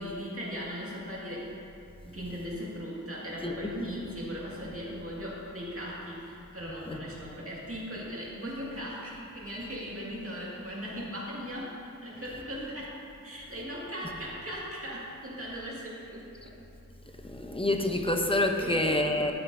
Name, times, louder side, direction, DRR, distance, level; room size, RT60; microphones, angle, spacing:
voice 1, 0.0-1.5 2.0-16.3 18.6-18.9 19.2-19.3, equal, 45° right, -6 dB, 2.1 m, -38 dB
voice 2, 17.2-19.3, left 1 dB, 15° left, 3 dB, 0.8 m, -27 dB
11.5 x 9.1 x 2.7 m, 2.7 s
wide cardioid pair, 50°, 32 cm